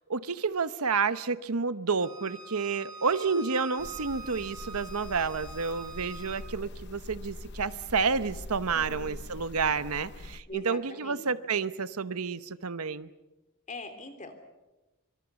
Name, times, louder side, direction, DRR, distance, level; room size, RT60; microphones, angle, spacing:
voice 1, 0.1-13.1, right 5 dB, 80° right, 13 dB, 0.9 m, -30 dB
Bowed string instrument, 2.0-6.4, right 3 dB, 20° right, 3.1 m, -45 dB
sound 1, 3.8-10.4, left 2 dB, 50° left, 0.8 m, -43 dB
voice 2, 8.7-9.2 10.5-11.3 13.7-14.3, left 2 dB, 35° left, 7 dB, 3.3 m, -42 dB
25.0 x 25.0 x 7.1 m, 1.1 s
head